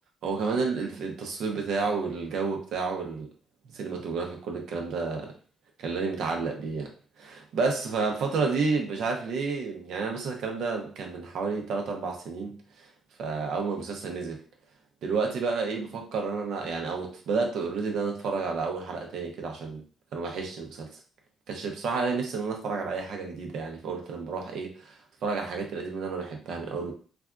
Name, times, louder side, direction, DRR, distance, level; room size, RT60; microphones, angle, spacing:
voice 1, 0.2-3.3 3.7-5.3 5.8-6.9 7.2-12.6 13.2-14.4 15.0-19.8 20.1-20.9 21.5-26.9, right 4 dB, 75° right, 2 dB, 0.7 m, -30 dB
3.4 x 2.3 x 2.4 m, 0.41 s
cardioid pair, 90°, 0 cm